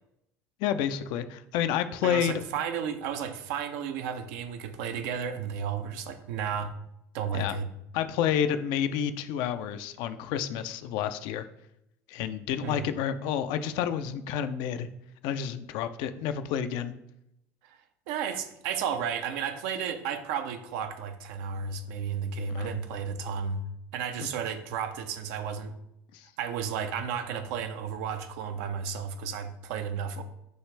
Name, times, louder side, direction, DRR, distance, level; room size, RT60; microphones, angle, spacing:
voice 1, 0.6-2.4 7.3-7.6 7.9-11.5 12.1-14.9 15.2-16.9 22.5-22.7 26.1-26.3, left 9 dB, 65° left, 11 dB, 0.4 m, -29 dB
voice 2, 2.0-6.7 7.1-7.7 12.6-12.9 17.6-17.8 18.1-23.6 23.9-25.7 26.4-30.2, right 7 dB, 70° right, 8 dB, 0.5 m, -33 dB
6.2 x 2.4 x 3.3 m, 0.81 s
hypercardioid pair, 75°, 8 cm